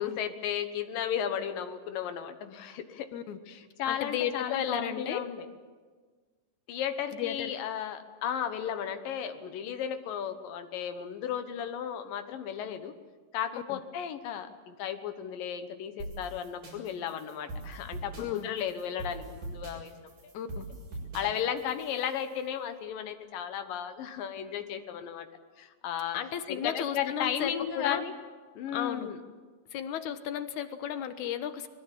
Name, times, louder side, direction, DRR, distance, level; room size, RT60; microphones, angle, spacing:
voice 1, 0.0-3.1 3.5-5.5 6.7-12.9 13.3-19.9 20.2-20.3 21.1-25.3 25.6-26.2 26.5-28.1 28.6-29.2, left 9 dB, 90° left, 8 dB, 2.9 m, -34 dB
voice 2, 3.9-5.3 7.1-7.5 13.5-13.8 18.2-18.5 20.3-20.7 26.1-28.0 28.7-29.1 29.7-31.7, left 9 dB, 65° left, 10 dB, 2.5 m, -34 dB
sound 1, 16.0-22.3, right 2 dB, 85° right, 8.5 m, -42 dB
24.0 x 21.0 x 7.5 m, 1.5 s
omnidirectional pair, 3.8 m